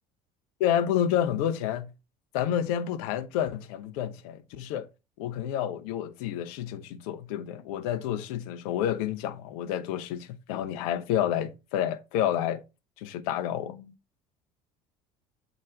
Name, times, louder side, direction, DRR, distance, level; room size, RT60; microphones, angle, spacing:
voice 1, 0.6-1.9 2.3-4.9 5.2-12.6 13.0-13.9, left 10 dB, 65° left, 0.8 m, -29 dB
7.5 x 3.9 x 5.0 m
figure-of-eight pair, 60°, 20 cm